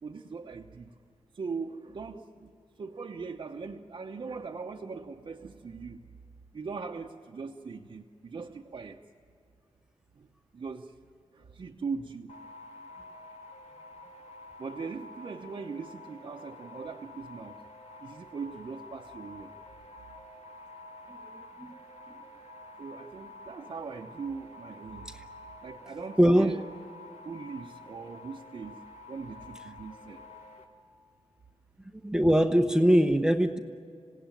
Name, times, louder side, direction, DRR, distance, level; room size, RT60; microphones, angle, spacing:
voice 1, 0.0-0.9 1.3-2.5 2.8-6.0 6.5-9.0 10.2-10.3 10.5-11.0 11.3-12.4 14.6-17.6 18.0-19.5 22.8-25.1 25.6-26.7 27.2-28.8 29.1-30.3, right 5 dB, 45° right, -1 dB, 0.9 m, -40 dB
sound 1, 12.3-30.6, left 2 dB, 85° left, 2.4 m, -49 dB
voice 2, 21.1-21.7 22.1-22.2 25.1-25.2 26.2-26.6 32.0-33.6, equal, 5° right, 6 dB, 0.8 m, -23 dB
27.0 x 17.5 x 9.2 m, 2.4 s
wide cardioid pair, 155°, 11 cm